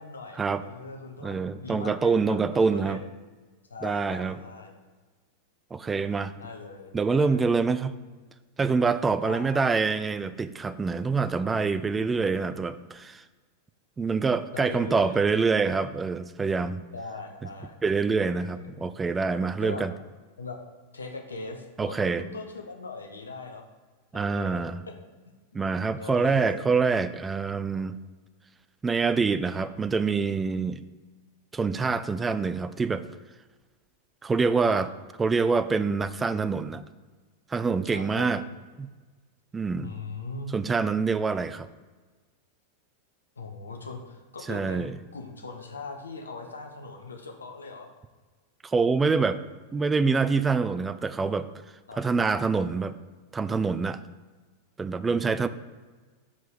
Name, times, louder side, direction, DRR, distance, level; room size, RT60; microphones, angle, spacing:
voice 1, 0.0-3.0 3.7-4.7 6.4-7.4 9.2-9.7 14.5-15.2 16.9-17.8 18.3-18.9 19.6-19.8 20.4-20.6 20.9-23.7 24.1-24.6 25.2-25.3 26.0-26.7 27.7-27.8 34.7-34.8 37.8-38.4 39.8-40.6 43.4-47.9 51.9-52.0, left 3 dB, 75° left, 3 dB, 0.9 m, -40 dB
voice 2, 1.2-3.0 3.8-4.4 5.7-6.3 6.9-8.0 8.6-13.2 14.0-16.8 17.8-19.9 21.8-22.2 24.1-24.8 25.5-28.0 28.8-30.8 31.5-33.1 34.2-34.9 35.2-36.8 37.5-38.4 38.8-38.9 39.5-39.9 40.5-41.7 44.5-44.9 48.6-49.4 49.7-51.5 52.0-53.0 53.3-54.0 54.8-55.5, right 4 dB, 15° right, 13 dB, 0.3 m, -25 dB
5.5 x 5.0 x 5.7 m, 1.3 s
figure-of-eight pair, 90°, 0 cm